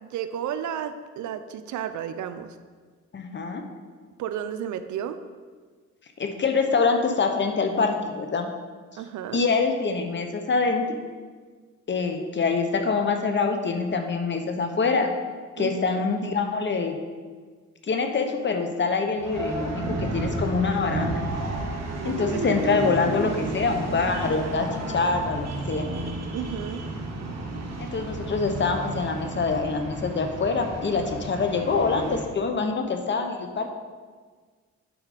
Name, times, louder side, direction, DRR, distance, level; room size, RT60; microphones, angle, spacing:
voice 1, 0.0-2.6 4.2-5.2 8.9-9.4 15.6-16.0 22.0-22.1 26.3-26.8, right 9 dB, 75° right, 10 dB, 0.6 m, -32 dB
voice 2, 3.1-3.6 6.2-8.5 9.3-11.0 11.9-15.1 15.6-17.0 17.8-21.2 22.0-24.7 24.9-25.8 27.8-33.7, left 4 dB, 40° left, 5 dB, 1.0 m, -25 dB
sound 1, 19.1-32.2, right 2 dB, 60° right, 1.4 m, -32 dB
8.7 x 4.9 x 5.2 m, 1.5 s
cardioid pair, 90°, 30 cm